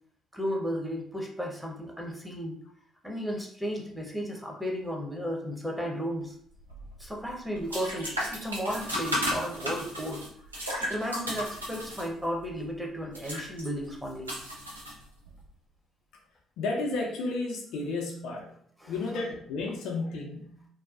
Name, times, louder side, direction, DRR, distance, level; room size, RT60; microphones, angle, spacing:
voice 1, 0.3-2.6 3.0-6.3 7.0-10.2 10.8-14.3 18.8-18.9, equal, 5° right, 0 dB, 0.8 m, -34 dB
sound 1, 6.5-15.4, equal, 85° right, 0.4 m, -35 dB
voice 2, 16.6-18.5 18.9-20.7, left 3 dB, 65° left, 1 dB, 0.4 m, -32 dB
2.6 x 2.2 x 2.4 m, 0.63 s
figure-of-eight pair, 45°, 0 cm